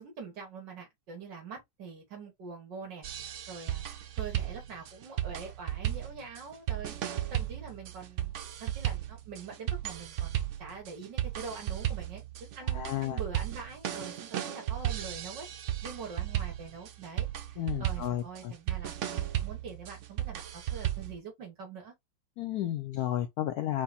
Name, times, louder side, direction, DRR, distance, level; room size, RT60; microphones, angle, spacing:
voice 1, 0.0-3.8 4.2-15.5 15.8-21.9, right 5 dB, 70° right, 2.0 m, -44 dB
sound 1, 3.0-21.2, right 12 dB, 85° right, 0.6 m, -35 dB
voice 2, 12.7-13.2 17.6-18.5 22.4-23.8, left 12 dB, 70° left, 0.9 m, -32 dB
4.8 x 2.3 x 4.1 m
omnidirectional pair, 2.0 m